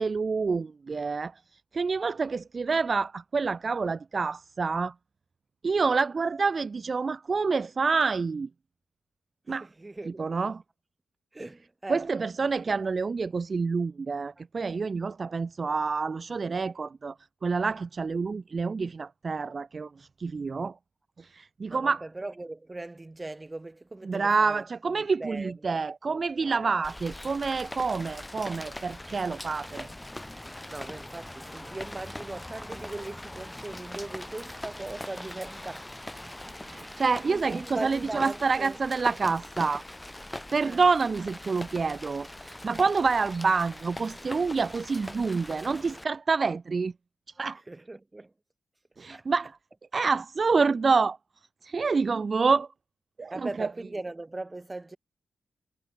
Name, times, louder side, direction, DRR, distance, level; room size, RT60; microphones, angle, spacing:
voice 1, 0.0-4.9 5.6-8.5 9.5-9.7 10.1-10.6 11.9-20.8 21.2-22.0 24.0-29.9 36.6-39.8 40.5-46.9 47.4-47.6 49.0-49.6 49.9-51.2 51.6-52.7 53.2-53.7, right 4 dB, 45° right, 0.4 m, -27 dB
voice 2, 9.8-10.4 11.3-12.1 21.7-24.6 25.2-25.5 26.1-26.7 30.7-35.9 37.3-38.8 40.6-40.8 47.7-48.3 49.1-49.3 53.3-55.0, right 2 dB, 20° right, 0.9 m, -39 dB
Rain, 26.8-46.0, left 1 dB, 10° left, 2.4 m, -42 dB
cardioid pair, 90°, 0 cm